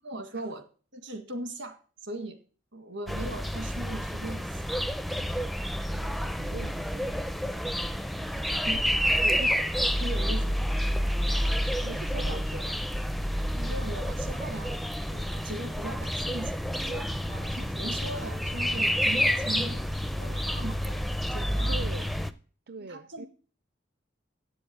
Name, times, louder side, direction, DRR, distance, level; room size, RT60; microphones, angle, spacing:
voice 1, 0.0-0.6 0.9-2.4 2.7-4.8 8.4-8.9 10.0-10.6 13.5-14.8 15.1-16.5 16.8-17.1 17.4-19.8 20.2-21.0 21.3-21.8 22.8-23.3, right 1 dB, 70° right, 7 dB, 1.9 m, -39 dB
sound 1, 3.1-22.3, equal, ahead, 0.5 m, -29 dB
voice 2, 5.9-7.2 9.0-9.5 11.8-12.8 17.3-17.8 21.7-22.1 22.7-23.3, right 3 dB, 50° right, 11 dB, 0.5 m, -41 dB
8.5 x 7.1 x 8.6 m, 0.40 s
head